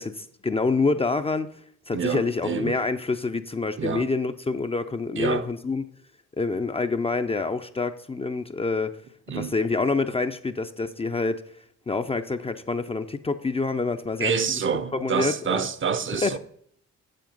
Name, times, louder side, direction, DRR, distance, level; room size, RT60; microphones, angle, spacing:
voice 1, 0.0-1.5 1.9-5.8 6.4-9.0 9.3-11.4 11.9-14.6 15.0-15.7 16.2-16.4, left 3 dB, 20° left, 0.5 m, -27 dB
voice 2, 1.9-2.8 3.8-4.1 5.2-5.5 9.3-9.6 14.2-16.4, right 6 dB, 40° right, 0.7 m, -27 dB
7.7 x 7.1 x 5.2 m
cardioid pair, 90°, 30 cm